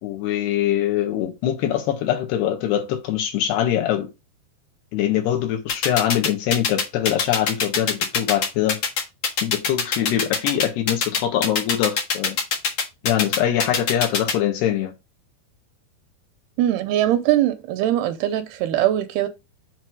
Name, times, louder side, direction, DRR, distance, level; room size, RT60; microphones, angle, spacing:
voice 1, 0.0-4.1 4.9-8.8 9.4-12.4 13.0-14.9, left 11 dB, 75° left, 3.3 m, -23 dB
sound 1, 5.7-14.3, left 5 dB, 55° left, 1.9 m, -22 dB
voice 2, 16.6-19.3, right 12 dB, 80° right, 2.5 m, -21 dB
7.6 x 3.0 x 6.1 m
omnidirectional pair, 4.9 m